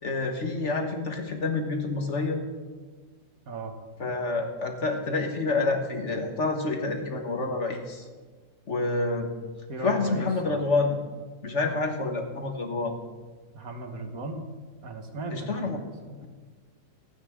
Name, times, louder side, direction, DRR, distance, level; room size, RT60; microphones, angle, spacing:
voice 1, 0.0-2.4 4.0-8.1 8.7-9.3 9.8-11.0 11.4-12.9 15.3-15.8, left 3 dB, 45° left, 3 dB, 1.6 m, -28 dB
voice 2, 9.7-10.7 11.6-11.8 13.5-14.5 14.8-16.2, right 2 dB, 55° right, 4 dB, 1.8 m, -37 dB
26.5 x 9.3 x 3.7 m, 1.4 s
omnidirectional pair, 1.8 m